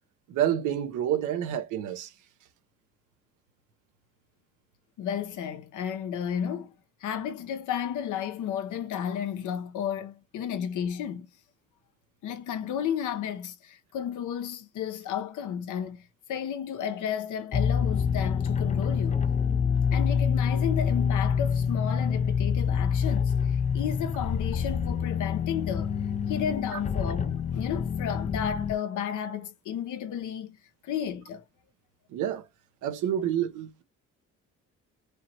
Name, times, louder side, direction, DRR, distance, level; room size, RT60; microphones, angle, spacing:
voice 1, 0.3-2.1 32.1-32.4 32.8-33.8, right 10 dB, 90° right, 0.9 m, -28 dB
voice 2, 5.0-6.7 7.0-11.3 12.2-19.2 19.9-25.9 26.3-30.6 30.8-31.4, left 9 dB, 80° left, 0.9 m, -33 dB
sound 1, 17.5-28.7, left 7 dB, 25° left, 0.4 m, -26 dB
4.9 x 3.0 x 2.8 m
cardioid pair, 90°, 30 cm